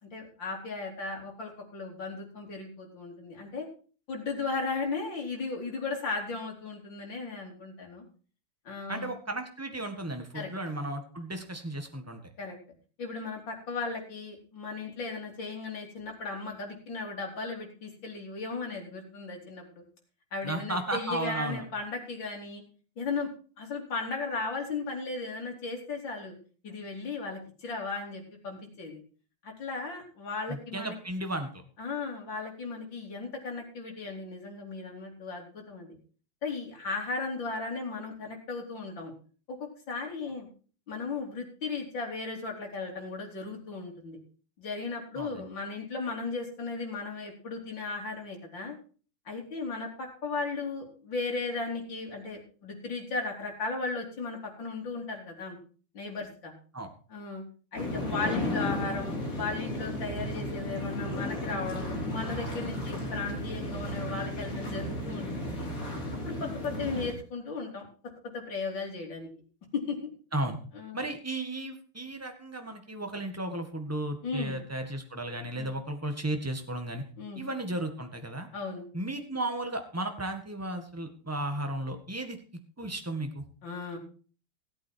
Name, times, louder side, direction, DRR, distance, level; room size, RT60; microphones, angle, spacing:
voice 1, 0.0-3.7 4.1-8.0 8.7-9.1 10.3-10.5 12.4-12.6 13.0-19.8 20.3-22.6 23.0-23.3 23.6-26.3 26.6-29.0 29.4-31.0 31.8-36.0 36.4-39.1 39.5-40.5 40.9-44.2 44.6-48.7 49.3-55.6 55.9-56.5 57.1-57.4 57.7-65.7 66.2-67.9 68.3-69.3 69.7-70.1 70.8-71.1 74.2-74.6 75.6-75.7 77.2-77.4 78.5-78.9 83.6-84.0, left 4 dB, 55° left, 0 dB, 4.1 m, -36 dB
voice 2, 8.9-12.2 20.4-21.6 30.5-31.6 45.1-45.5 56.7-56.9 70.3-70.6 70.9-77.0 77.3-78.5 78.9-82.4 82.8-83.4, right 1 dB, 10° right, 5 dB, 1.5 m, -34 dB
sound 1, 57.8-67.1, left 1 dB, 40° left, 3.7 m, -34 dB
17.5 x 8.5 x 4.6 m, 0.39 s
omnidirectional pair, 2.4 m